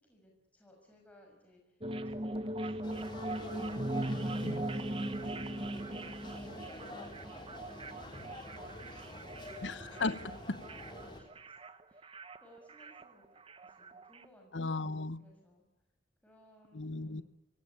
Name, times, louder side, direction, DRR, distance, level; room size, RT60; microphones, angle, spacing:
voice 1, 0.0-3.2 5.7-6.9 7.9-9.7 10.5-11.6 11.9-14.8 15.1-15.6 16.2-17.2, equal, 10° left, 0 dB, 6.1 m, -62 dB
sound 1, 1.8-14.2, right 1 dB, 30° right, 1.2 m, -40 dB
sound 2, 2.8-11.2, left 1 dB, 25° left, 3.8 m, -47 dB
voice 2, 9.6-10.6 14.5-15.2 16.7-17.2, left 3 dB, 85° left, 15 dB, 1.1 m, -36 dB
24.0 x 17.5 x 9.6 m, 1.1 s
head